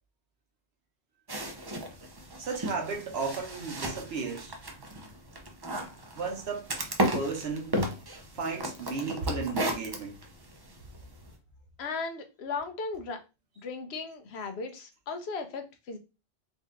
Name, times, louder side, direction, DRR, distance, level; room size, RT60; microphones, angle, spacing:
sound 1, 1.3-11.3, right 1 dB, 25° right, 0.5 m, -35 dB
voice 1, 2.4-4.6 6.2-6.7 7.1-7.8 8.3-10.2, right 4 dB, 65° right, 1.2 m, -34 dB
voice 2, 11.8-13.2 13.6-16.0, left 4 dB, 70° left, 1.0 m, -36 dB
3.8 x 2.7 x 3.6 m
omnidirectional pair, 1.1 m